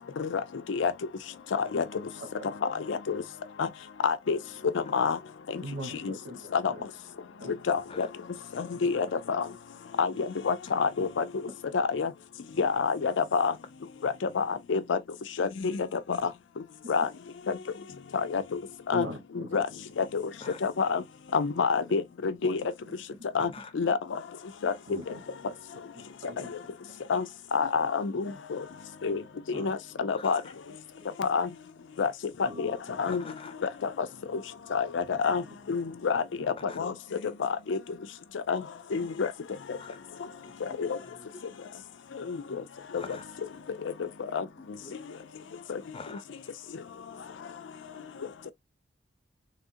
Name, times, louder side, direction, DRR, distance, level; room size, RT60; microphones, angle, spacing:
voice 1, 2.9-3.2 3.6-3.7 4.0-4.4 4.9-5.2 6.5-6.7 7.7-8.1 8.6-9.4 10.0-11.2 11.7-12.1 12.6-13.5 14.0-15.0 15.4-15.7 16.9-17.1 18.3-18.4 18.9-19.1 19.5-19.6 20.0-20.2 20.6-21.0 21.3-22.6 23.3-23.5 23.7-24.0 24.6-24.7 27.1-27.2 27.5-28.2 28.5-28.6 29.0-29.2 29.5-30.4 31.2-31.5 32.0-32.1 32.6-32.7 33.0-33.2 34.7-35.4 35.7-36.2 36.8-36.9 37.4-37.8 38.5-38.6 38.9-39.3 40.8-40.9 44.3-44.4, left 5 dB, 85° left, 0.4 m, -27 dB
voice 2, 5.6-6.4 6.7-6.8 7.4-7.5 11.0-11.1 18.9-19.6 24.9-25.2 26.2-26.5 29.5-29.7 32.4-32.6 35.1-35.2 36.7-36.8, equal, 90° right, 1.2 m, -40 dB
voice 3, 23.4-23.7 30.1-30.4 33.1-33.5 36.7-36.8 39.8-40.0 40.7-41.1 43.0-43.2 44.6-45.1 45.9-46.2, left 4 dB, 30° left, 0.5 m, -45 dB
3.4 x 2.5 x 2.6 m
head